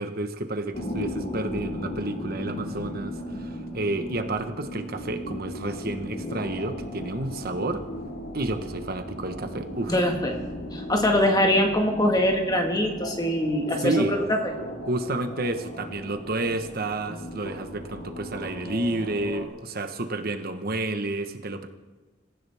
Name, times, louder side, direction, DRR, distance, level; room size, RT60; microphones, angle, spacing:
voice 1, 0.0-7.9 8.3-10.1 13.8-14.2 14.9-21.7, right 2 dB, 50° right, 8 dB, 1.2 m, -30 dB
sound 1, 0.7-19.4, left 1 dB, 60° left, 5.3 m, -37 dB
voice 2, 9.9-10.3 10.7-14.2, left 1 dB, 20° left, 2 dB, 1.8 m, -23 dB
26.5 x 15.5 x 3.5 m, 1.3 s
head